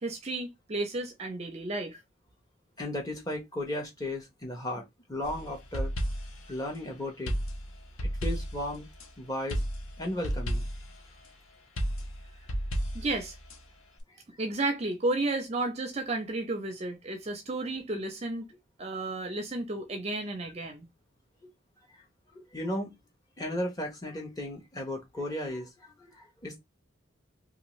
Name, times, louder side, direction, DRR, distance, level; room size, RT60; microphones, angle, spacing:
voice 1, 0.0-2.0 12.9-13.4 14.4-18.4 18.8-20.9, right 2 dB, 30° right, 0.5 m, -32 dB
voice 2, 2.8-4.8 5.1-5.9 6.5-7.3 8.0-8.9 9.2-9.6 10.0-10.7 21.4-21.5 22.3-22.9 23.4-26.6, left 1 dB, 20° left, 0.9 m, -35 dB
sound 1, 5.2-6.5 7.3-9.1 9.5-11.0 11.8-13.6, equal, 85° left, 0.7 m, -32 dB
2.5 x 2.4 x 3.0 m
head